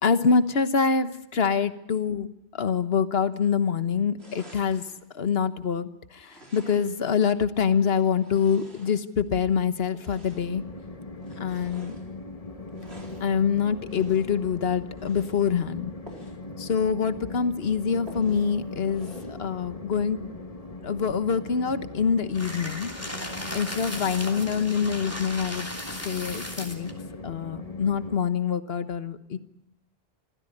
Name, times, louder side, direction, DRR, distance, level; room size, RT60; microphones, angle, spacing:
voice 1, 0.0-4.9 5.1-10.6 11.4-12.0 13.2-15.9 16.6-20.2 20.8-22.9 23.5-25.7 26.0-26.9 27.2-29.4, left 6 dB, 65° left, 12 dB, 1.4 m, -25 dB
sound 1, 4.2-5.0 6.2-7.1 7.6-9.3 9.9-10.6 11.2-12.1 12.7-13.3 13.9-14.4 14.9-15.4 16.0-16.4 16.8-16.9 17.2-17.3 18.1-18.5 18.9-19.4, equal, 70° right, 4.5 m, -49 dB
Train, 10.3-28.2, left 2 dB, 35° left, 1.6 m, -40 dB
sound 2, 22.3-26.9, left 1 dB, 15° left, 3.0 m, -36 dB
26.0 x 15.0 x 10.0 m, 0.89 s
omnidirectional pair, 1.1 m